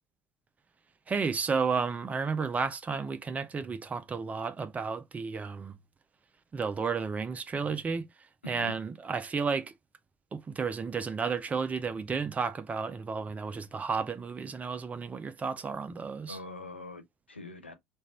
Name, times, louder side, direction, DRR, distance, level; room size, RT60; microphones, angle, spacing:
voice 1, 1.1-5.8 6.5-8.1 8.5-9.7 10.3-16.4, right 5 dB, 25° right, 0.6 m, -32 dB
voice 2, 8.4-8.8 16.3-17.7, left 2 dB, 85° left, 0.6 m, -44 dB
3.2 x 2.5 x 4.2 m
figure-of-eight pair, 65°, 6 cm